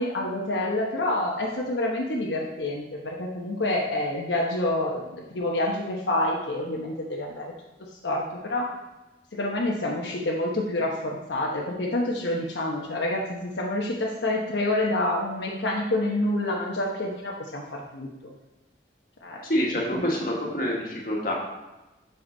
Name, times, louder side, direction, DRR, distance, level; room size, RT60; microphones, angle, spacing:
voice 1, 0.0-7.5 8.0-8.7 9.3-18.1 19.2-19.4 19.9-20.0, left 1 dB, 80° left, -2 dB, 1.1 m, -27 dB
voice 2, 19.4-21.3, equal, 50° left, -3 dB, 1.7 m, -26 dB
8.0 x 5.9 x 3.9 m, 1.1 s
head